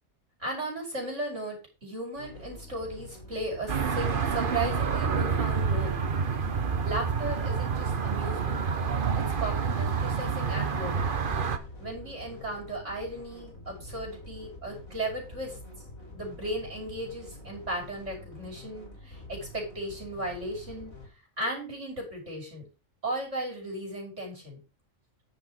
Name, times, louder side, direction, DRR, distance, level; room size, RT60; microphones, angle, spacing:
voice 1, 0.4-6.0 6.8-8.6 9.2-10.9 11.8-15.6 16.1-20.9 21.4-22.7 23.0-24.6, right 1 dB, 60° right, 0 dB, 5.7 m, -36 dB
sound 1, 2.2-21.1, left 2 dB, 80° left, 5.0 m, -47 dB
sound 2, 3.7-11.6, right 6 dB, 40° right, 1.1 m, -28 dB
10.0 x 6.8 x 5.0 m, 0.31 s
omnidirectional pair, 1.4 m